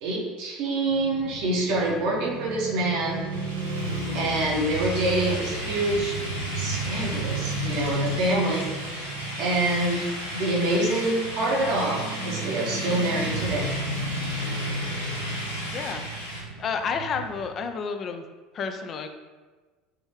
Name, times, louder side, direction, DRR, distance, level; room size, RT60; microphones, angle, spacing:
voice 1, 0.0-3.3 4.1-6.2 6.5-8.7 9.4-10.1 10.3-13.7, right 2 dB, 60° right, -3 dB, 1.0 m, -26 dB
Motorcycle / Traffic noise roadway noise, 0.9-17.5, right 2 dB, 80° right, 0.5 m, -33 dB
sound 1, 3.3-16.4, left 1 dB, 85° left, 0.7 m, -36 dB
voice 2, 15.7-16.0 16.6-18.2 18.5-19.1, left 5 dB, 40° left, 6 dB, 0.3 m, -30 dB
3.5 x 3.0 x 3.2 m, 1.3 s
figure-of-eight pair, 65°, 0 cm